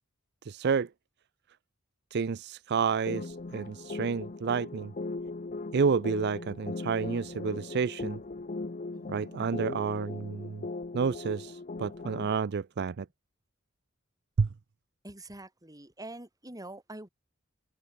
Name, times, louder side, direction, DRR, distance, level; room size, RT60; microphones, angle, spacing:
voice 1, 0.4-0.9 2.1-4.9 5.7-8.2 9.1-10.7 10.9-13.1 14.4-14.5, right 5 dB, 55° right, 0.5 m, -30 dB
sound 1, 3.1-12.3, left 3 dB, 40° left, 0.7 m, -39 dB
voice 2, 8.9-9.4 15.0-17.1, right 1 dB, 20° right, 4.6 m, -45 dB
head